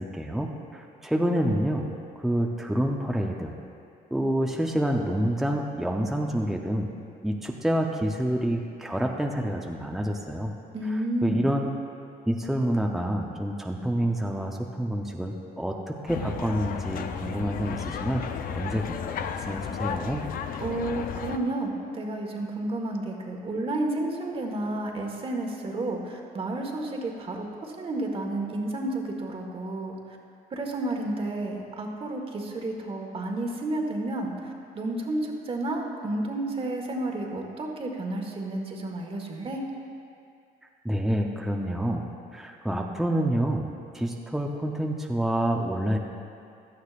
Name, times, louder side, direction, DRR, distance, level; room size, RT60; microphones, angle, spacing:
voice 1, 0.0-3.5 4.1-6.9 7.2-10.5 11.2-11.7 12.3-19.0 19.5-20.2 40.8-43.7 43.9-46.0, right 1 dB, ahead, 1 dB, 0.7 m, -28 dB
voice 2, 10.7-11.5 20.6-30.2 30.5-39.6, right 2 dB, 35° right, 2 dB, 1.5 m, -31 dB
sound 1, 16.1-21.4, left 7 dB, 60° left, 0.6 m, -33 dB
16.0 x 11.5 x 2.5 m, 2.4 s
cardioid pair, 110°, 17 cm